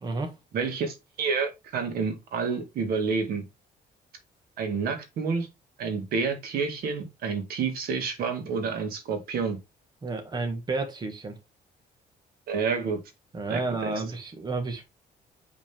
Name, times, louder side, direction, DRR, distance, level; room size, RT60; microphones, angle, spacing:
voice 1, 0.0-0.3 10.0-11.4 13.3-14.8, right 3 dB, 25° right, 1.7 m, -31 dB
voice 2, 0.5-3.4 4.6-5.5 5.8-9.6 12.5-13.0 13.5-13.9, right 5 dB, 70° right, 2.3 m, -29 dB
8.1 x 5.4 x 3.6 m
cardioid pair, 145°, 16 cm